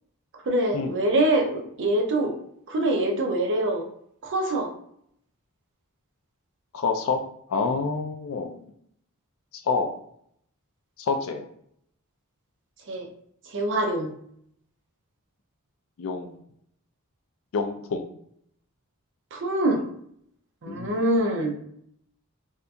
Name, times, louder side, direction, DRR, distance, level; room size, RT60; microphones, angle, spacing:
voice 1, 0.5-2.4 2.7-3.8 4.2-4.7 12.9-13.1 13.5-14.1 19.3-19.8 20.6-21.5, right 1 dB, 55° right, 1 dB, 0.5 m, -24 dB
voice 2, 6.7-7.2 7.5-8.6 9.5-9.9 11.0-11.4 16.0-16.4 17.5-18.1 20.7-21.0, left 4 dB, 65° left, 6 dB, 0.4 m, -27 dB
2.7 x 2.4 x 2.2 m, 0.69 s
head